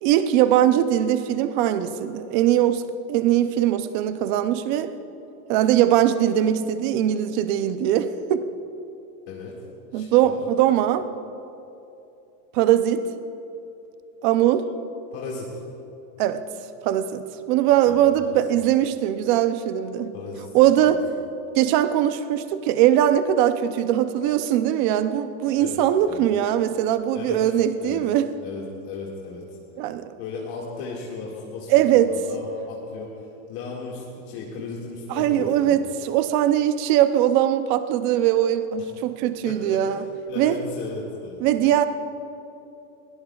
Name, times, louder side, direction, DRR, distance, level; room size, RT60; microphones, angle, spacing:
voice 1, 0.0-2.8 3.1-4.9 5.5-8.5 9.9-11.1 12.5-13.1 14.2-14.7 16.2-16.4 16.8-20.1 20.5-21.0 21.5-28.3 29.8-30.1 31.7-32.2 35.1-40.0 40.4-40.6 41.4-41.9, right 11 dB, 35° right, 11 dB, 0.5 m, -21 dB
voice 2, 9.9-10.4 15.1-15.5 17.8-18.5 20.1-20.5 20.8-21.0 25.6-25.8 26.1-26.2 27.1-27.4 27.8-28.0 28.4-29.4 30.2-33.1 33.5-35.8 38.8-38.9 39.4-41.4, left 4 dB, 45° left, -3 dB, 2.1 m, -36 dB
22.0 x 17.5 x 2.4 m, 2.8 s
supercardioid pair, 165°, 42 cm